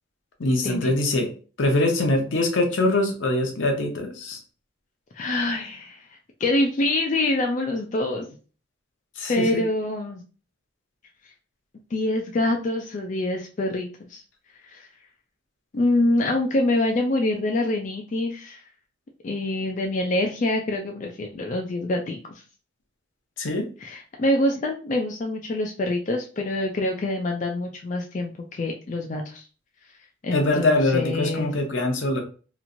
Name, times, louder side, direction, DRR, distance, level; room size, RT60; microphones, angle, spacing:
voice 1, 0.4-1.3 1.6-4.4 9.2-9.6 23.4-23.7 30.3-32.2, left 2 dB, 75° left, 4 dB, 0.7 m, -23 dB
voice 2, 5.1-8.3 9.3-10.2 11.2-11.3 11.9-14.2 14.6-14.9 15.7-18.6 19.2-22.4 23.8-29.5 30.2-31.5, left 2 dB, 40° left, 2 dB, 0.3 m, -25 dB
3.0 x 2.4 x 2.5 m, 0.37 s
head